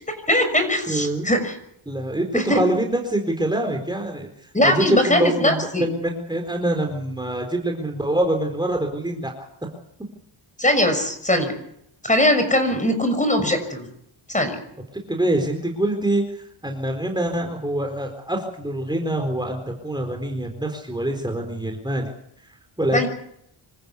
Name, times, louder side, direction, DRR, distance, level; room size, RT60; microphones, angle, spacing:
voice 1, 0.3-1.6 2.3-2.6 4.5-5.8 10.6-11.5 12.0-13.9 14.3-14.6 22.9-23.1, left 1 dB, 15° left, 8 dB, 6.2 m, -20 dB
voice 2, 0.9-1.2 1.9-9.3 15.1-22.1 22.4-23.1, right 1 dB, 10° right, 2 dB, 4.2 m, -25 dB
26.5 x 14.5 x 8.3 m, 0.74 s
cardioid pair, 90°, 47 cm